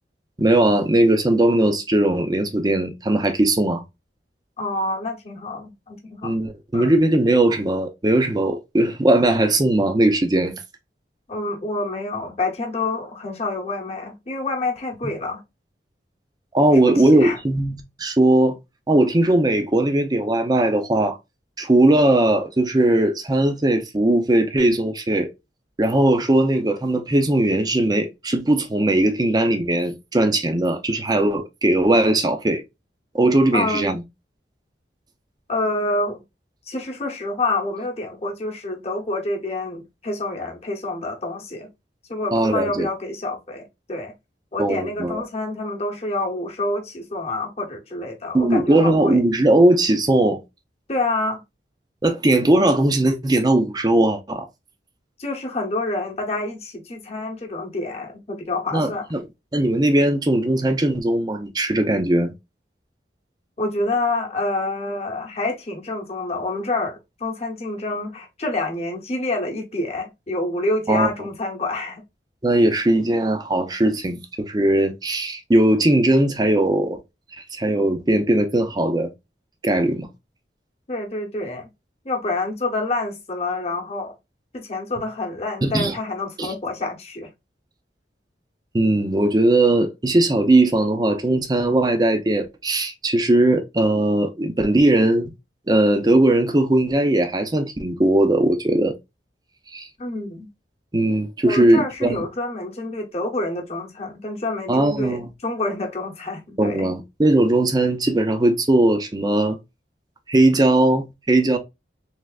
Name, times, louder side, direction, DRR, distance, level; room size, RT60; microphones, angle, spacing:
voice 1, 0.4-3.8 6.2-10.5 16.5-18.5 18.9-21.2 21.6-25.3 25.8-32.6 33.1-34.0 42.3-42.9 44.6-45.2 48.3-50.4 52.0-54.5 58.7-59.2 59.5-62.3 70.9-71.1 72.4-77.0 77.5-79.1 79.6-80.1 85.6-85.9 86.4-86.5 88.7-95.3 95.7-98.9 99.7-99.9 100.9-102.2 104.7-105.3 106.6-109.6 110.3-111.6, right 1 dB, 25° right, 0.5 m, -19 dB
voice 2, 4.6-6.3 6.7-6.9 11.3-15.4 16.8-17.4 33.5-33.9 35.5-36.2 36.7-41.7 42.1-44.1 44.5-49.2 50.9-51.4 55.2-59.1 63.6-72.0 80.9-81.7 82.0-84.1 84.5-87.3 100.0-100.5 101.5-106.9, left 2 dB, 35° left, 0.9 m, -27 dB
3.4 x 3.2 x 2.3 m
head